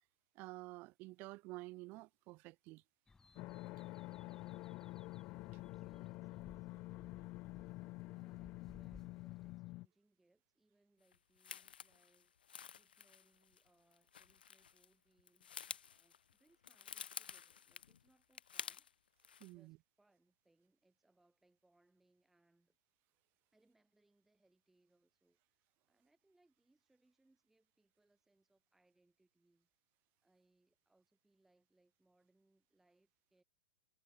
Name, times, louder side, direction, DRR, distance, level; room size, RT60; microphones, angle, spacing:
voice 1, 0.3-2.8 19.4-19.8, right 22 dB, 40° right, 0.7 m, -50 dB
sound 1, 3.1-9.6, left 4 dB, 10° left, 0.7 m, -63 dB
sound 2, 3.4-9.9, left 21 dB, 40° left, 0.9 m, -48 dB
voice 2, 4.2-4.9 5.7-7.7 8.1-12.3 12.8-15.5 15.9-18.9 19.5-22.8 23.5-25.6 25.9-29.7 30.2-33.4, right 2 dB, 5° right, 7.4 m, -76 dB
sound 3, 11.1-14.9 15.2-18.9 19.2-19.5, left 8 dB, 75° left, 0.7 m, -51 dB
hypercardioid pair, 110°, 5 cm